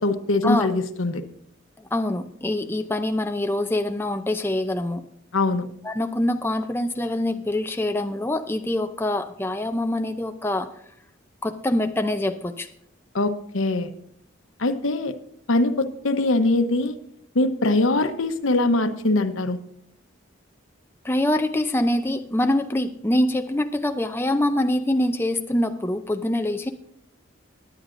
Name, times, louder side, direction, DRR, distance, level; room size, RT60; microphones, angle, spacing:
voice 1, 0.0-1.2 5.3-5.7 13.1-13.9 14.6-15.1 15.5-17.0 17.3-19.6, left 2 dB, 85° left, 9 dB, 0.9 m, -22 dB
voice 2, 1.9-5.1 5.8-10.7 11.4-12.7 21.0-26.7, left 1 dB, 10° left, 6 dB, 0.5 m, -24 dB
19.0 x 9.7 x 2.6 m, 0.71 s
head